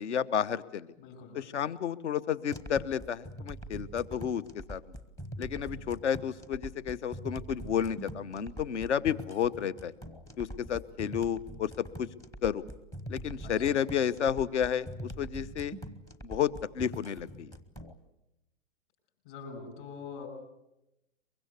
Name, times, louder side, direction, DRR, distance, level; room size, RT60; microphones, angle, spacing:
voice 1, 0.0-0.9 1.3-4.4 4.7-4.8 5.4-9.9 10.4-12.1 12.4-12.6 13.1-15.8 16.2-17.5, left 8 dB, 60° left, 19 dB, 1.1 m, -31 dB
voice 2, 1.0-1.4 13.4-13.8 19.2-20.3, left 5 dB, 45° left, 2 dB, 6.4 m, -44 dB
sound 1, 2.5-17.9, right 1 dB, 10° left, 0.8 m, -43 dB
23.5 x 22.5 x 8.1 m, 0.90 s
hypercardioid pair, 140°, 38 cm